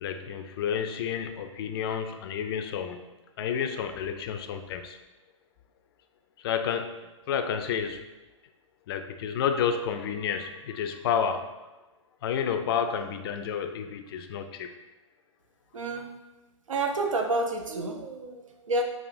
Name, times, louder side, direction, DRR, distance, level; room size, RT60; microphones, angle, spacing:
voice 1, 0.0-3.1 3.4-5.0 6.4-6.9 7.3-8.0 8.9-11.5 12.2-14.7, left 7 dB, 50° left, 7 dB, 0.4 m, -30 dB
voice 2, 15.7-16.1 16.7-18.8, right 2 dB, 75° right, 4 dB, 0.6 m, -29 dB
4.7 x 2.4 x 2.5 m, 1.1 s
figure-of-eight pair, 110°, 17 cm